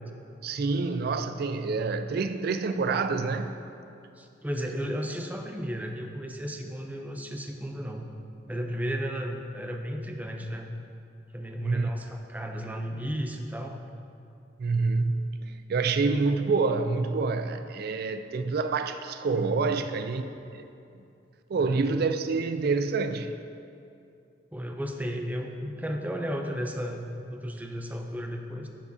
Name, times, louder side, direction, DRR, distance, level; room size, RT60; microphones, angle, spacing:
voice 1, 0.4-3.5 11.6-11.9 14.6-20.6 21.5-23.3, right 4 dB, 60° right, 9 dB, 0.4 m, -27 dB
voice 2, 4.2-8.1 8.5-10.7 11.3-13.8 21.5-21.9 24.5-28.7, equal, 10° right, 3 dB, 0.6 m, -34 dB
14.0 x 7.0 x 2.8 m, 2.6 s
head